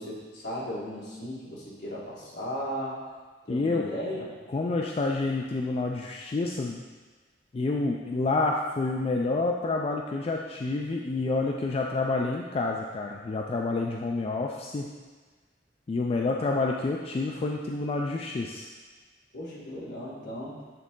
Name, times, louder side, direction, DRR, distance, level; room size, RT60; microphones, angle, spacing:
voice 1, 0.0-3.0 3.5-4.3 19.3-20.5, equal, 65° left, -6 dB, 1.7 m, -36 dB
voice 2, 3.5-3.9 4.5-6.8 7.5-14.9 15.9-18.7, left 3 dB, 35° left, 0 dB, 0.3 m, -28 dB
8.4 x 3.6 x 3.7 m, 1.4 s
head